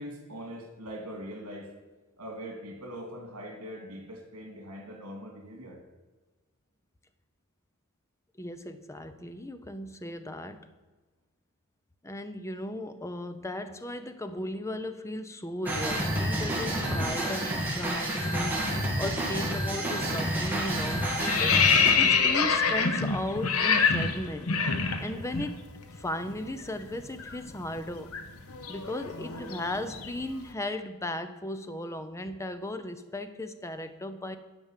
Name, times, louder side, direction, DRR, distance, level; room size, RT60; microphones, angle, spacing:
voice 1, 0.0-1.7 2.2-5.8, equal, 75° right, 2 dB, 2.7 m, -42 dB
voice 2, 8.4-10.7 12.0-24.6 25.0-25.6 26.0-28.2 28.7-34.4, left 1 dB, 15° left, 10 dB, 0.6 m, -36 dB
sound 1, 15.6-21.9, right 1 dB, 10° right, 2.2 m, -29 dB
sound 2, 20.0-20.3 20.6-25.5 25.8-26.0 26.3-30.3, left 5 dB, 70° left, 0.9 m, -26 dB
10.5 x 5.3 x 7.3 m, 1.3 s
head